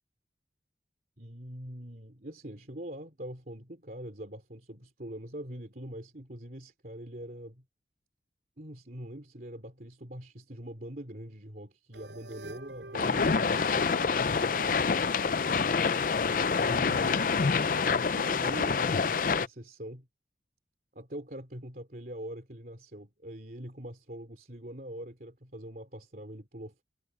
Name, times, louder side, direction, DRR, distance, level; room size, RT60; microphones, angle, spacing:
voice 1, 1.2-7.6 8.6-15.1 16.6-20.1 20.9-26.8, right 1 dB, 50° right, 3.2 m, -43 dB
sound 1, 11.9-15.0, right 2 dB, 90° right, 5.8 m, -48 dB
sound 2, 12.9-19.5, left 5 dB, 50° left, 0.5 m, -27 dB
head